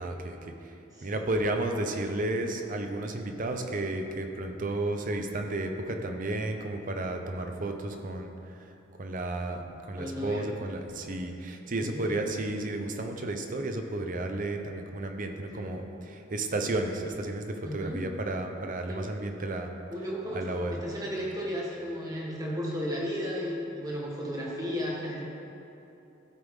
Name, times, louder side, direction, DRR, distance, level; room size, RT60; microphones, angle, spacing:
voice 1, 0.0-0.7 1.0-8.3 9.0-9.6 9.9-19.7 20.3-20.8, right 2 dB, 45° right, 4 dB, 0.6 m, -32 dB
voice 2, 9.9-10.5 11.8-12.1 15.5-15.7 17.6-18.0 18.9-19.1 19.9-25.3, equal, 20° right, -4 dB, 1.4 m, -34 dB
13.0 x 4.8 x 3.6 m, 2.9 s
head